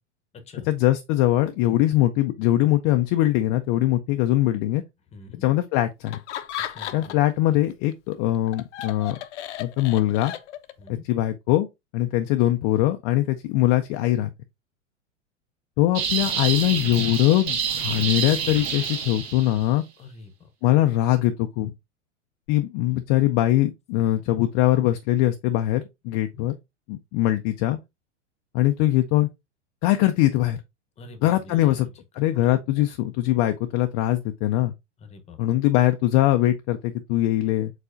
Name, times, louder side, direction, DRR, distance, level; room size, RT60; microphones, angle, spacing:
voice 1, 0.6-4.8 5.4-6.2 6.9-9.2 9.6-10.3 10.9-11.7 11.9-14.3 15.8-19.8 20.6-21.7 22.5-26.5 26.9-27.8 28.5-29.3 29.8-30.6 31.2-31.9 32.2-34.7 35.4-37.7, left 15 dB, 35° left, 0.4 m, -22 dB
voice 2, 5.1-5.4 6.7-7.2 10.8-11.1 20.0-20.3 26.3-26.5 31.0-31.8 32.3-32.4 35.0-35.4, left 3 dB, 20° left, 0.9 m, -44 dB
Laughter, 6.1-7.4 7.7-10.9, left 11 dB, 70° left, 0.6 m, -35 dB
sound 1, 16.0-19.6, right 7 dB, 55° right, 1.4 m, -28 dB
4.6 x 4.1 x 2.5 m
hypercardioid pair, 115°, 37 cm